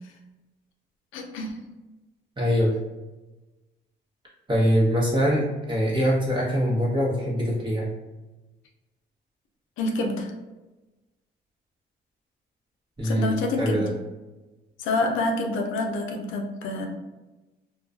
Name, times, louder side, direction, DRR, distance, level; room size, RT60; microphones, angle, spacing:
voice 1, 1.1-1.6 9.8-10.3 13.0-13.8 14.8-16.9, left 2 dB, 80° left, 3 dB, 0.5 m, -27 dB
voice 2, 2.4-2.7 4.5-7.9 13.0-13.9, equal, 25° right, -5 dB, 1.0 m, -23 dB
2.3 x 2.2 x 2.4 m, 1.1 s
cardioid pair, 90°, 20 cm